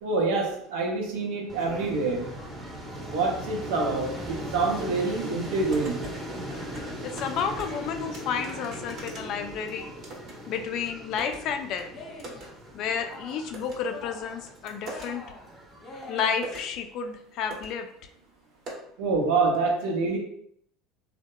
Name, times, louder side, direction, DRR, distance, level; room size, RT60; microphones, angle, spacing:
voice 1, 0.0-2.3 3.1-6.0 19.0-20.2, right 3 dB, 85° right, -1 dB, 0.6 m, -26 dB
sound 1, 1.5-16.1, right 1 dB, 20° right, 0.7 m, -39 dB
sound 2, 5.7-6.2 6.5-7.8 8.1-10.4 10.7-11.4 11.8-11.9 12.2-12.5 12.8-12.9 13.5-13.8 14.3-15.1 15.9-16.0 16.3-16.7 17.2-17.3 17.5-17.7 18.0-18.1 18.7-18.8, right 2 dB, 55° right, 0.8 m, -42 dB
voice 2, 7.0-9.9 10.5-11.8 12.7-15.2 16.1-17.9, left 7 dB, 60° left, 6 dB, 0.3 m, -31 dB
Cheering, 11.8-12.5 12.8-13.5 13.8-14.5 14.8-16.6, left 2 dB, 35° left, 0.7 m, -44 dB
2.7 x 2.1 x 2.2 m, 0.67 s
supercardioid pair, 105°, 0 cm